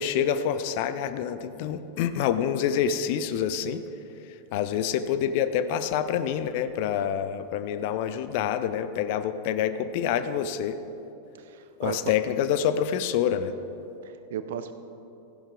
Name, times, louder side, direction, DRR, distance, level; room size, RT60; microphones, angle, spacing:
voice 1, 0.0-3.8 4.2-10.8 11.8-13.5, left 9 dB, 50° left, 11 dB, 0.6 m, -27 dB
voice 2, 11.4-12.1 14.0-14.7, right 9 dB, 55° right, 11 dB, 0.6 m, -35 dB
15.0 x 11.0 x 3.7 m, 2.9 s
figure-of-eight pair, 90°, 0 cm